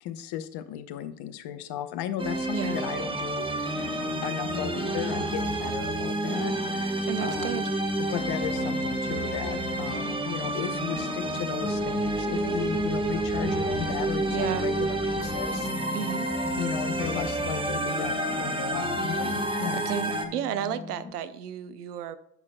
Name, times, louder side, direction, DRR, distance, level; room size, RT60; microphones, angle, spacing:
voice 1, 0.0-7.6 8.0-16.0 16.6-19.8, left 10 dB, 60° left, 10 dB, 0.9 m, -35 dB
sound 1, 2.2-20.3, right 1 dB, 10° right, 1.3 m, -29 dB
sound 2, 2.3-2.5 3.4-3.8 4.5-6.4 7.3-7.8 8.4-10.2 11.3-11.7 12.4-14.3 15.2-15.6 16.3-18.1, right 4 dB, 40° right, 3.2 m, -43 dB
sound 3, 3.7-21.1, left 5 dB, 30° left, 1.2 m, -41 dB
voice 2, 7.1-7.6 14.3-14.7 15.9-16.3 19.7-22.2, right 10 dB, 85° right, 14 dB, 0.6 m, -32 dB
13.5 x 5.8 x 2.2 m, 0.78 s
hypercardioid pair, 55°, 45 cm